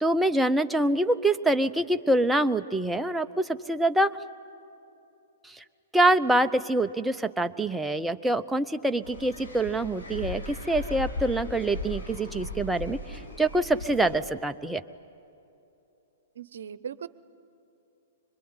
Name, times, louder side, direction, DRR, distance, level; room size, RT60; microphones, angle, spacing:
voice 1, 0.0-4.2 5.4-5.6 5.9-14.8, right 1 dB, 5° right, 8 dB, 0.7 m, -25 dB
sound 1, 9.0-14.1, left 2 dB, 85° left, 5.9 m, -37 dB
voice 2, 16.4-17.1, right 8 dB, 70° right, 16 dB, 0.9 m, -38 dB
25.0 x 23.0 x 9.7 m, 2.8 s
hypercardioid pair, 115°, 0 cm